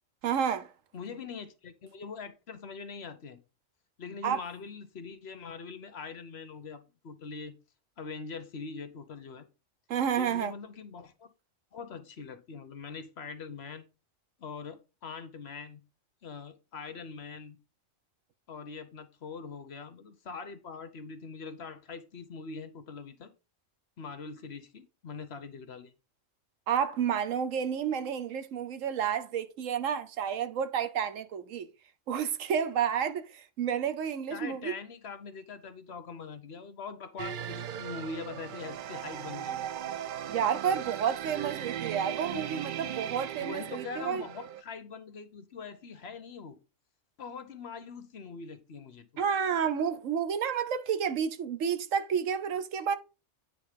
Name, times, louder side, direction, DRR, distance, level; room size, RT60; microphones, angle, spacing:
voice 1, 0.2-0.7 4.2-4.4 9.9-10.5 26.7-31.7 32.1-34.7 40.3-44.2 49.2-53.0, right 8 dB, 80° right, 1.2 m, -30 dB
voice 2, 0.9-3.4 4.0-7.6 8.0-9.5 10.2-11.3 11.7-13.9 14.4-15.8 16.2-17.6 18.5-23.3 24.0-25.9 34.3-39.6 43.4-46.6 47.2-49.2, left 5 dB, 60° left, 1.1 m, -43 dB
sound 1, 37.2-44.6, right 10 dB, 60° right, 0.5 m, -38 dB
9.2 x 3.4 x 5.1 m
omnidirectional pair, 1.3 m